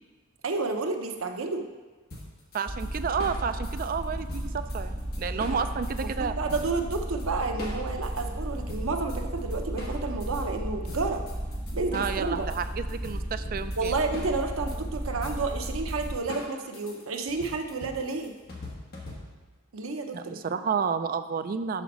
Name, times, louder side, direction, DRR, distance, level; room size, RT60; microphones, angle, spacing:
voice 1, 0.4-1.7 5.5-5.6 6.2-11.2 11.7-12.5 13.8-18.3 19.7-20.4, right 3 dB, 85° right, 5 dB, 0.8 m, -31 dB
sound 1, 2.1-6.1 6.5-7.3 7.6-10.4 10.9-19.5, left 1 dB, 50° left, 1.5 m, -43 dB
voice 2, 2.5-6.4 11.9-13.9 20.1-21.8, right 6 dB, 45° right, 10 dB, 0.3 m, -31 dB
sound 2, 2.7-16.2, right 1 dB, 20° right, 1.7 m, -34 dB
5.9 x 5.6 x 6.0 m, 1.3 s
head